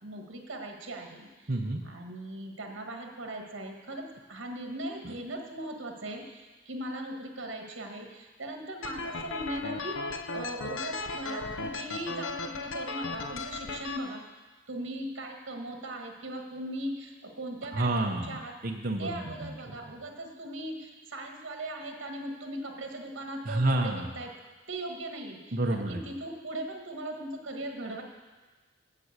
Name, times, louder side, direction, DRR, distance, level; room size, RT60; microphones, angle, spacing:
voice 1, 0.0-1.3 1.8-14.2 14.7-18.5 19.0-24.3 24.7-28.0, right 1 dB, 70° right, 2 dB, 1.4 m, -39 dB
voice 2, 1.5-1.8 5.0-5.1 17.7-18.4 18.6-19.5 23.5-24.1 25.5-26.0, right 2 dB, 45° right, 1 dB, 0.8 m, -29 dB
sound 1, 8.8-14.0, left 3 dB, 75° left, 0.6 m, -36 dB
7.6 x 7.3 x 8.1 m, 1.3 s
head